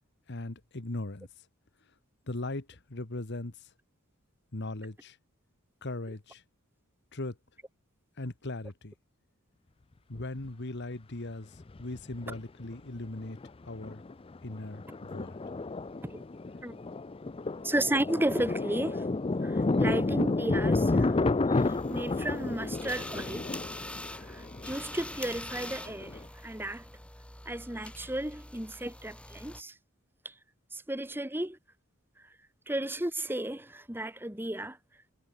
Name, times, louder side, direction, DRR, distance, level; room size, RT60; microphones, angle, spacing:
voice 1, 0.3-1.3 2.3-3.7 4.5-5.2 5.8-6.4 7.1-7.4 8.2-8.9 10.1-13.4 13.6-14.0 14.4-15.4, left 2 dB, 55° left, 1.5 m, -39 dB
Thunder, 10.2-10.3 11.6-12.4 12.7-12.8 13.2-13.5 13.8-26.2, left 3 dB, 25° left, 0.5 m, -31 dB
voice 2, 17.6-19.1 19.4-23.4 24.1-26.9 27.4-29.8 30.2-30.3 30.7-31.6 32.7-34.8, right 1 dB, 10° right, 1.6 m, -34 dB
sound 1, 21.5-29.6, left 1 dB, 5° left, 3.6 m, -44 dB
head